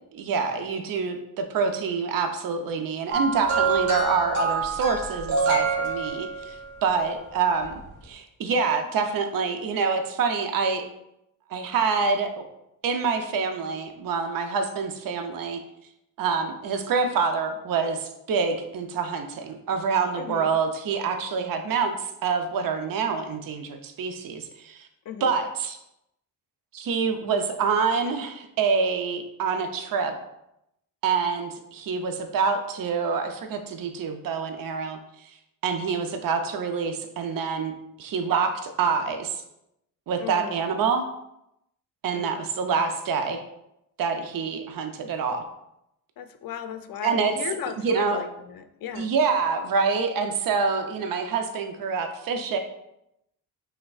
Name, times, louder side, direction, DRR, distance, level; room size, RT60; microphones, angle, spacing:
voice 1, 0.1-10.9 11.5-12.4 12.8-15.6 16.2-24.9 25.2-25.8 26.7-30.2 31.0-35.0 35.6-39.4 40.1-41.0 42.0-43.4 44.0-45.4 47.0-47.3 47.8-48.2 48.9-52.6, right 5 dB, 55° right, 6 dB, 0.7 m, -26 dB
sound 1, 3.1-6.6 7.7-7.9, right 4 dB, 90° right, 1.7 m, -26 dB
voice 2, 20.2-20.6 25.1-25.4 40.2-40.6 42.1-42.4 46.2-49.1, left 8 dB, 55° left, 8 dB, 0.5 m, -36 dB
5.7 x 3.4 x 2.4 m, 0.83 s
cardioid pair, 85°, 41 cm